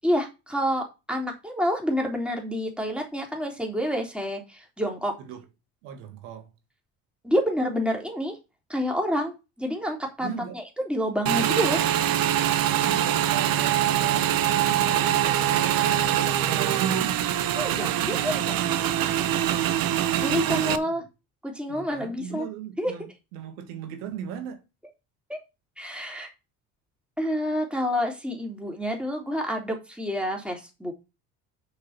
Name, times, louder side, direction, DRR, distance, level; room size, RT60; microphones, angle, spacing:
voice 1, 0.0-5.1 7.2-8.4 8.7-11.8 17.6-18.6 20.2-21.0 21.4-22.5 22.8-22.9 25.3-25.4 25.8-26.3 27.2-30.9, equal, ahead, 3.6 m, -28 dB
voice 2, 5.8-6.5 10.2-10.6 12.8-15.2 15.5-17.3 21.7-23.1 23.3-24.6, right 7 dB, 75° right, 1.7 m, -37 dB
Motorcycle / Engine, 11.3-20.8, right 11 dB, 50° right, 1.1 m, -24 dB
6.6 x 5.8 x 5.9 m
hypercardioid pair, 60°, 44 cm